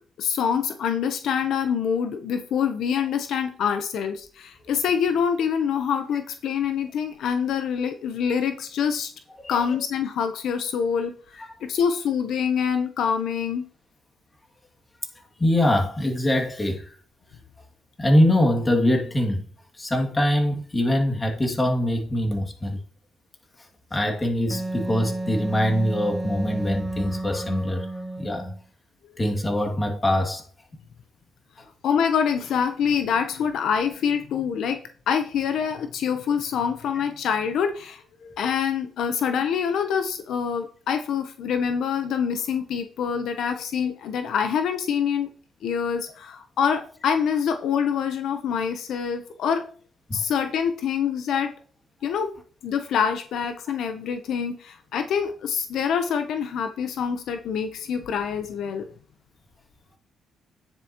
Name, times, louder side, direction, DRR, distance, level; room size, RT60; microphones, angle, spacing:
voice 1, 0.2-9.1 9.5-11.1 11.6-13.7 31.8-45.3 45.6-49.7 50.1-51.6 52.0-52.3 52.6-58.9, left 7 dB, 75° left, 0.8 m, -25 dB
voice 2, 15.4-16.9 18.0-19.4 19.8-22.8 23.9-27.9 28.2-28.5 29.2-30.4 50.1-50.2, left 1 dB, 20° left, 2.3 m, -23 dB
Wind instrument woodwind instrument, 24.5-28.6, right 1 dB, 5° right, 1.0 m, -31 dB
9.7 x 8.2 x 3.0 m
cardioid pair, 90°, 0 cm